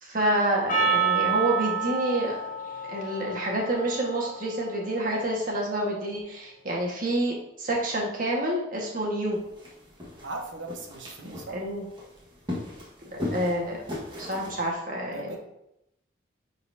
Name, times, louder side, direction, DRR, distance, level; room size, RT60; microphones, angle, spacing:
voice 1, 0.0-2.3 2.9-9.4 11.5-11.8 13.1-13.8 14.2-15.4, right 1 dB, 45° right, -2 dB, 1.6 m, -28 dB
Percussion, 0.7-5.2, right 5 dB, 45° left, 1.0 m, -29 dB
sound 1, 9.3-14.7, left 2 dB, 25° right, 1.5 m, -38 dB
voice 2, 10.2-11.6 15.0-15.4, right 2 dB, 90° right, 2 dB, 1.1 m, -38 dB
9.6 x 4.1 x 2.8 m, 0.83 s
head